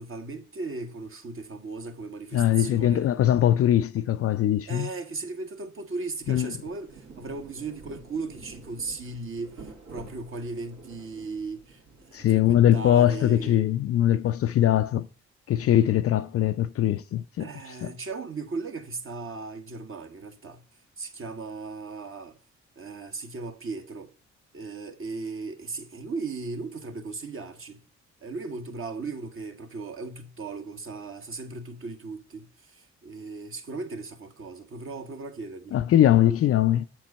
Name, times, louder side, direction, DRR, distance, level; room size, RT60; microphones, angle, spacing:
voice 1, 0.0-3.1 4.7-11.8 12.1-13.7 17.4-20.6 21.0-22.4 22.8-24.1 24.5-27.8 28.2-35.8, right 3 dB, 40° right, 1.2 m, -37 dB
voice 2, 2.3-4.9 6.3-6.5 12.1-15.1 15.5-17.5 17.8-17.9 35.7-36.9, left 11 dB, 45° left, 0.4 m, -21 dB
Rain, 6.0-13.2, right 4 dB, 60° right, 2.0 m, -49 dB
7.1 x 4.5 x 5.3 m
hypercardioid pair, 50°, 33 cm